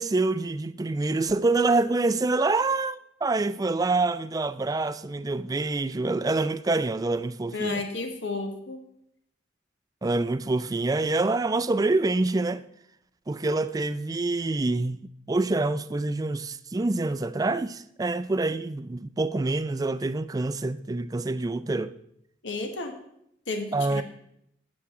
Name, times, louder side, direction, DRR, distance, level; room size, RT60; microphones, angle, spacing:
voice 1, 0.0-7.8 10.0-12.6 13.3-21.9 23.7-24.0, right 2 dB, 20° right, 0.3 m, -26 dB
voice 2, 7.5-8.8 22.4-22.9 23.5-24.0, left 3 dB, 85° left, 1.2 m, -32 dB
12.5 x 8.7 x 3.7 m
head